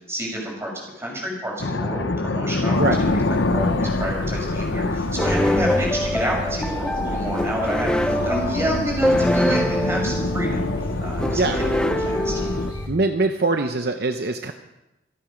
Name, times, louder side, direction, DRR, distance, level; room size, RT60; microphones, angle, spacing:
voice 1, 0.1-10.7 11.0-12.3, right 1 dB, 15° right, -2 dB, 5.5 m, -29 dB
sound 1, 1.6-12.7, left 2 dB, 75° left, 0.9 m, -26 dB
sound 2, 2.7-12.9, left 1 dB, 25° left, 4.8 m, -32 dB
sound 3, 5.2-12.9, equal, 5° left, 0.7 m, -25 dB
voice 2, 12.9-14.5, right 3 dB, 55° right, 6 dB, 0.8 m, -22 dB
27.0 x 9.0 x 5.2 m, 0.94 s
head